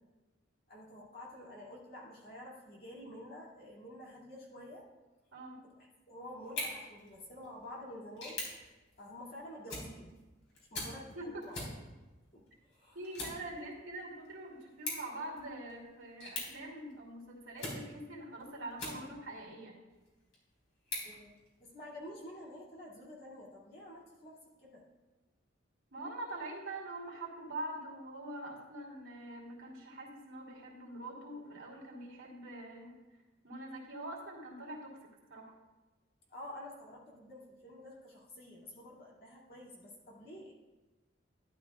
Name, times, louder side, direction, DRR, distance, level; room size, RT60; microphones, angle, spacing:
voice 1, 0.7-4.8 5.6-8.4 9.0-10.1 10.7-11.6 12.3-13.0 21.0-24.8 36.3-40.5, left 1 dB, 45° left, -5 dB, 2.5 m, -49 dB
sound 1, 6.4-19.4 19.9-22.0, left 2 dB, 70° left, 3.8 m, -46 dB
voice 2, 12.9-19.8 25.9-35.5, right 1 dB, 80° right, -2 dB, 2.7 m, -44 dB
12.0 x 11.0 x 2.4 m, 1.1 s
head